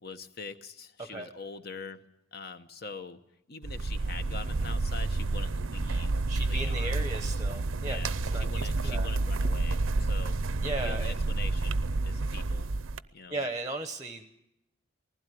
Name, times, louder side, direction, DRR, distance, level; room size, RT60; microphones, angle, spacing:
voice 1, 0.0-2.0 2.3-3.2 3.5-7.0 7.8-10.4 10.8-12.7 13.1-13.4, left 4 dB, 45° left, 10 dB, 1.0 m, -43 dB
sound 1, 3.6-13.0, right 3 dB, 70° right, 0.7 m, -29 dB
voice 2, 6.3-9.1 10.6-11.2 13.3-14.3, right 2 dB, 15° right, 7 dB, 0.9 m, -36 dB
20.0 x 16.0 x 9.3 m, 0.85 s
head